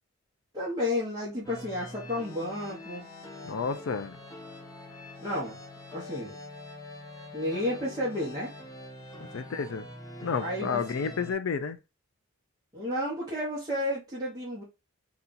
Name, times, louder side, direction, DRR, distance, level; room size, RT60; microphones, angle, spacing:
voice 1, 0.5-3.1 5.2-5.6 5.9-6.4 7.3-8.5 10.4-10.8 12.7-14.6, left 1 dB, 20° right, 0.9 m, -32 dB
sound 1, 1.4-11.3, left 1 dB, 15° left, 0.6 m, -44 dB
voice 2, 3.4-4.2 9.3-9.9 10.2-11.8, left 5 dB, 65° left, 0.4 m, -31 dB
2.8 x 2.4 x 3.8 m
head